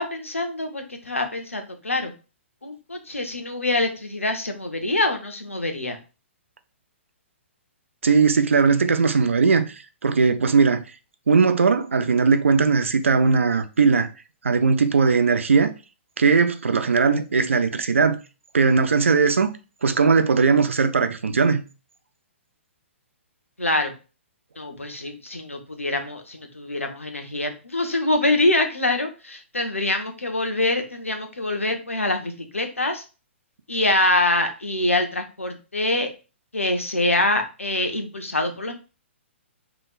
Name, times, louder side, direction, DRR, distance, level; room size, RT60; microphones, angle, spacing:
voice 1, 0.0-2.1 2.6-6.0 23.6-23.9 24.6-33.0 33.7-36.1 36.5-38.7, left 2 dB, 85° left, 0.7 m, -25 dB
voice 2, 8.0-10.8 11.3-14.1 14.4-15.7 16.2-18.2 18.5-19.5 19.8-21.6, right 5 dB, 75° right, 0.4 m, -19 dB
3.2 x 2.9 x 2.4 m
figure-of-eight pair, 120°, 7 cm